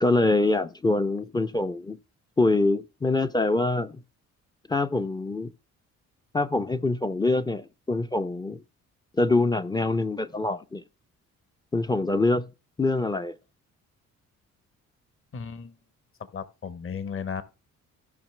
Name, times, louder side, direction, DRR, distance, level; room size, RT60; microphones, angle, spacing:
voice 1, 0.0-2.0 2.4-4.0 4.7-5.5 6.3-8.6 9.2-10.8 11.7-12.4 12.8-13.3, left 2 dB, 15° left, 0.4 m, -24 dB
voice 2, 15.3-15.7 16.3-17.4, left 6 dB, 45° left, 1.2 m, -34 dB
15.5 x 5.7 x 3.2 m
cardioid pair, 90°, 30 cm